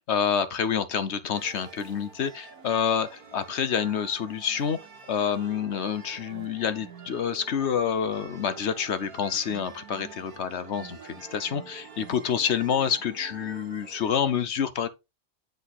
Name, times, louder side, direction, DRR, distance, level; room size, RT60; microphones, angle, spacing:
voice 1, 0.0-4.8 5.1-14.9, left 7 dB, 55° left, 1.0 m, -28 dB
sound 1, 1.3-14.2, right 5 dB, 80° right, 1.7 m, -47 dB
9.9 x 4.0 x 4.0 m
omnidirectional pair, 1.6 m